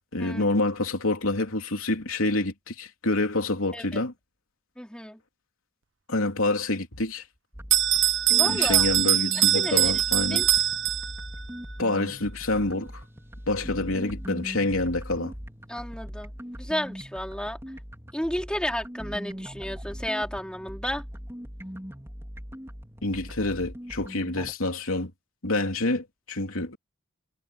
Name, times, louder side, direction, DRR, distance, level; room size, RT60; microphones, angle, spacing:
voice 1, 0.1-4.1 6.1-7.2 8.5-10.4 11.8-12.9 13.5-15.3 23.0-25.1 25.4-26.8, left 2 dB, 85° left, 3.3 m, -27 dB
voice 2, 4.8-5.2 8.3-8.9 9.3-10.0 10.3-10.5 15.7-16.3 16.6-17.6 18.1-21.0, equal, 5° left, 4.5 m, -32 dB
sound 1, 7.5-24.5, equal, 10° right, 4.7 m, -40 dB
Bell, 7.7-11.4, right 12 dB, 60° right, 1.1 m, -22 dB
head